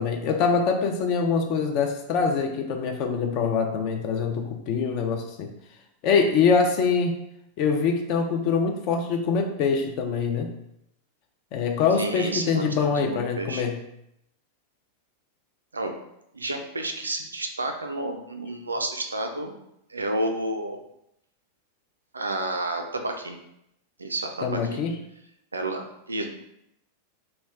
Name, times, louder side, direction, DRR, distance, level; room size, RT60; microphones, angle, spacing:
voice 1, 0.0-5.5 6.0-7.2 7.6-10.5 11.5-13.8 24.4-24.9, left 5 dB, 45° left, 3 dB, 0.4 m, -24 dB
voice 2, 12.0-13.6 15.7-15.9 16.3-19.5 19.9-20.8 22.1-23.4 24.0-24.8 25.5-26.2, right 2 dB, 75° right, 4 dB, 0.3 m, -30 dB
2.3 x 2.1 x 3.4 m, 0.79 s
figure-of-eight pair, 90°, 0 cm